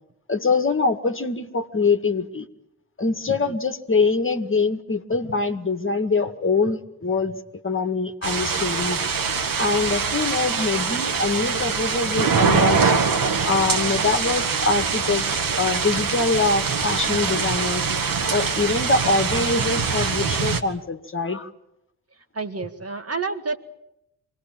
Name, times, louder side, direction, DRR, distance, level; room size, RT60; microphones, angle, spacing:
voice 1, 0.3-2.5 3.0-7.4 7.6-9.0 9.6-13.0 13.5-17.9 18.3-21.5, left 4 dB, 30° left, 7 dB, 1.9 m, -24 dB
sound 1, 8.2-20.6, right 5 dB, 50° right, 2.0 m, -23 dB
voice 2, 22.3-23.6, right 4 dB, 35° right, 7 dB, 2.0 m, -29 dB
25.0 x 18.5 x 9.1 m, 0.86 s
hypercardioid pair, 40°, 44 cm